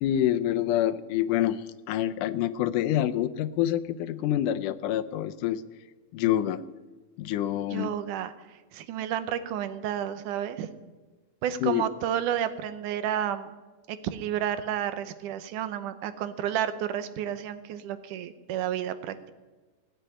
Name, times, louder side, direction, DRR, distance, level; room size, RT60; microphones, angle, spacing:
voice 1, 0.0-5.6 6.1-6.6 7.2-7.9 11.6-11.8, left 12 dB, 85° left, 14 dB, 2.2 m, -27 dB
voice 2, 7.7-8.3 8.7-10.7 11.4-13.5 13.9-19.2, right 10 dB, 80° right, 12 dB, 2.4 m, -31 dB
17.5 x 8.1 x 9.8 m, 1.3 s
omnidirectional pair, 3.6 m